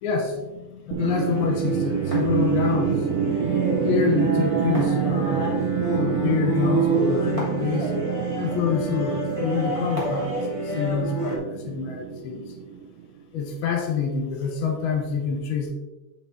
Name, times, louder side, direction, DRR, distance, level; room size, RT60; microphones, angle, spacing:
voice 1, 0.0-3.1 3.8-5.7 6.0-7.9 8.4-10.4 10.6-12.5 13.3-15.7, left 6 dB, 70° left, 2 dB, 2.6 m, -27 dB
sound 1, 0.9-13.1, right 8 dB, 85° right, 2.9 m, -27 dB
sound 2, 1.0-11.4, right 1 dB, 60° right, 0.3 m, -28 dB
7.8 x 7.3 x 3.1 m, 1.1 s
omnidirectional pair, 5.1 m